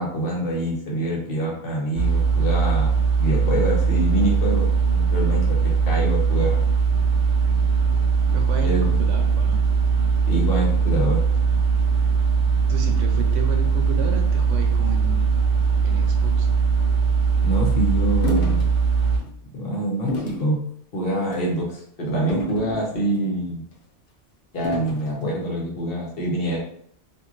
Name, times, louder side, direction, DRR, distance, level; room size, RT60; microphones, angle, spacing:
voice 1, 0.0-4.7 4.9-6.6 8.6-9.0 10.3-11.2 17.4-18.7 19.5-20.7 20.9-23.7 24.5-26.6, right 1 dB, 55° left, -3 dB, 1.0 m, -26 dB
sound 1, 1.9-19.2, right 5 dB, 55° right, 0.5 m, -20 dB
voice 2, 8.3-9.6 12.7-15.4 15.8-16.5, right 5 dB, 80° right, 3 dB, 0.9 m, -32 dB
sound 2, 18.2-18.7 19.1-19.3 20.1-20.4 21.2-21.5 22.3-23.2 24.6-25.1, equal, 80° left, 1.0 m, -29 dB
2.9 x 2.7 x 2.4 m, 0.64 s
omnidirectional pair, 1.2 m